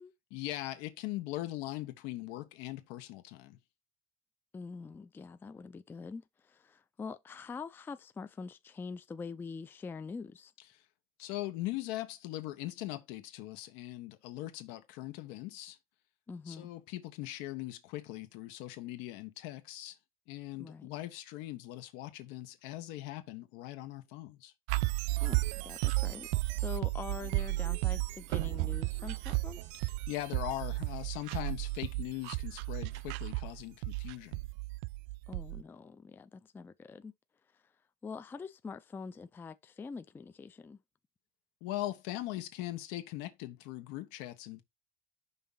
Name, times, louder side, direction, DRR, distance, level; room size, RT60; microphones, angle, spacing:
voice 1, 0.3-3.6 11.2-15.8 16.5-20.0 20.3-24.5 29.7-34.5 41.6-44.6, left 15 dB, 75° left, 1.3 m, -40 dB
voice 2, 4.5-10.5 16.3-16.7 20.6-20.9 25.2-29.7 35.3-37.1 38.0-40.8, left 5 dB, 10° left, 0.3 m, -44 dB
sound 1, 24.7-35.6, right 22 dB, 70° right, 0.4 m, -33 dB
5.6 x 3.6 x 5.5 m
cardioid pair, 155°, 19 cm